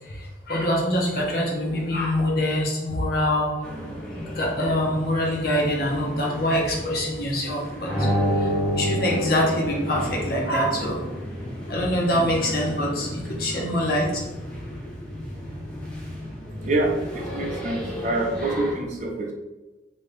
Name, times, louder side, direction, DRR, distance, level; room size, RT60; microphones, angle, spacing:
voice 1, 0.0-3.6 4.2-11.0 11.7-14.2, left 1 dB, 55° left, -2 dB, 0.7 m, -25 dB
sound 1, 3.6-18.7, equal, 5° left, 0.6 m, -35 dB
sound 2, 7.8-10.5, equal, 30° left, 1.0 m, -26 dB
voice 2, 16.6-19.3, right 2 dB, 40° right, 1 dB, 0.4 m, -26 dB
2.7 x 2.6 x 3.3 m, 1.1 s
head